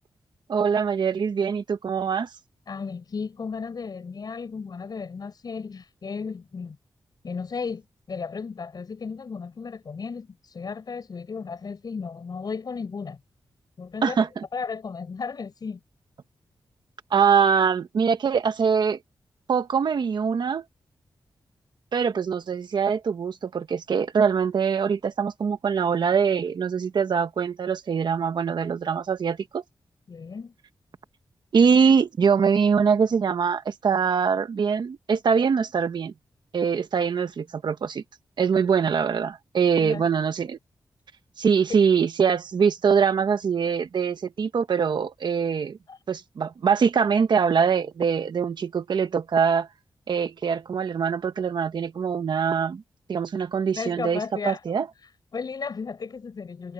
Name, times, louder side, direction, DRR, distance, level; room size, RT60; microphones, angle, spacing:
voice 1, 0.5-2.3 14.0-14.3 17.1-19.0 19.5-20.6 21.9-29.6 31.5-36.1 36.5-38.0 38.4-40.6 41.4-45.8 46.1-49.7 50.1-52.8 53.1-54.9, right 6 dB, 65° right, 1.4 m, -23 dB
voice 2, 2.7-6.8 7.2-13.2 13.8-14.3 14.5-15.8 30.1-30.5 39.8-40.0 45.9-46.0 53.7-54.6 55.3-56.7, left 5 dB, 55° left, 7.0 m, -34 dB
wide cardioid pair, 110°, 8 cm